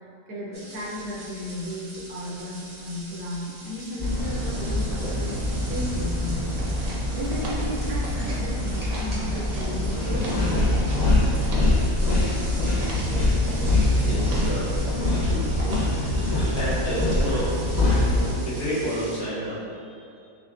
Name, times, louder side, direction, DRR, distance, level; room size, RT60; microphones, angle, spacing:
voice 1, 0.3-5.4 5.7-6.4 7.1-10.5, left 1 dB, 80° right, -4 dB, 1.4 m, -34 dB
sound 1, 0.5-19.2, right 1 dB, 35° right, 0.4 m, -42 dB
sound 2, 4.0-18.3, left 1 dB, 45° left, 0.5 m, -24 dB
sound 3, 6.6-8.5 8.7-9.7 10.0-11.8 12.1-12.4 12.8-13.1 13.4-13.8 14.2-14.5 14.8-15.3 15.6-16.0, right 1 dB, 60° right, 1.1 m, -40 dB
voice 2, 13.8-14.7 15.2-17.5 17.9-20.2, equal, 70° left, -11 dB, 2.0 m, -31 dB
6.4 x 2.9 x 2.5 m, 2.4 s
omnidirectional pair, 1.8 m